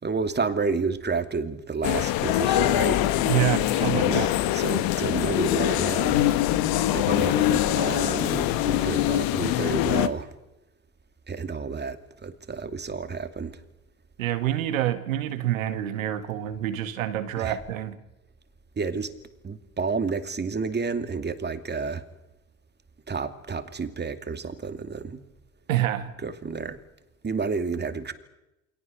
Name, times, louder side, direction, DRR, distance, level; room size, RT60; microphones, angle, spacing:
voice 1, 0.0-3.0 3.9-6.2 6.9-10.3 11.3-13.6 17.4-17.6 18.8-19.1 19.4-22.0 23.1-25.2 26.2-26.8 27.2-28.1, right 4 dB, 25° right, 2.5 m, -30 dB
sound 1, 1.8-10.1, left 14 dB, 60° left, 1.5 m, -23 dB
voice 2, 3.3-4.3 14.2-18.0 25.7-26.2, right 12 dB, 80° right, 1.9 m, -27 dB
29.0 x 22.5 x 6.5 m
hypercardioid pair, 65°, 40 cm